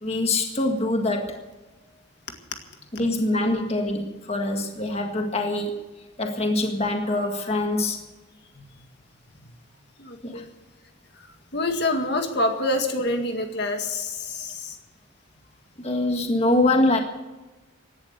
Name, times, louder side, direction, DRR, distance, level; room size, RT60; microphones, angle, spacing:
voice 1, 0.0-1.4 2.9-5.7 6.2-8.0 10.2-10.5 15.8-17.0, left 2 dB, 30° left, 3 dB, 1.8 m, -24 dB
voice 2, 10.0-10.5 11.5-14.8, left 2 dB, 60° left, 4 dB, 1.9 m, -27 dB
17.0 x 11.5 x 6.7 m, 1.1 s
head